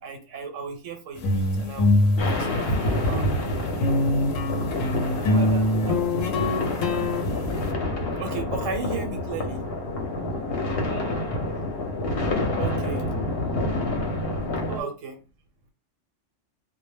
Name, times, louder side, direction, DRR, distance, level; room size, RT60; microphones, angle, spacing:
voice 1, 0.0-2.1 2.3-3.3 8.2-9.7 12.5-13.0 14.8-15.1, right 5 dB, 80° right, 4 dB, 1.0 m, -35 dB
sound 1, 1.2-3.4 3.8-7.7, left 1 dB, 85° left, 1.0 m, -24 dB
sound 2, 2.2-14.8, left 1 dB, 60° left, 0.8 m, -28 dB
voice 2, 5.2-6.0 10.9-11.3 12.6-13.1 14.7-14.9, right 6 dB, 45° right, 1 dB, 0.7 m, -39 dB
2.1 x 2.0 x 3.2 m, 0.32 s
omnidirectional pair, 1.3 m